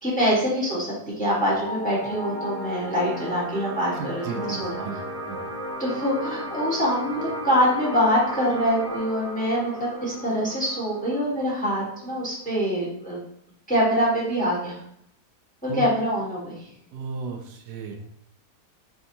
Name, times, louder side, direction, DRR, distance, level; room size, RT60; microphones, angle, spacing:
voice 1, 0.0-5.0 5.8-13.2 13.7-14.8 15.6-16.7, equal, 5° left, -5 dB, 1.0 m, -25 dB
sound 1, 1.6-12.6, equal, 55° left, 0.5 m, -35 dB
voice 2, 3.9-5.0 5.3-5.4 15.7-15.8 16.9-18.0, right 5 dB, 75° right, 3 dB, 1.2 m, -34 dB
4.5 x 3.4 x 2.7 m, 0.70 s
omnidirectional pair, 1.8 m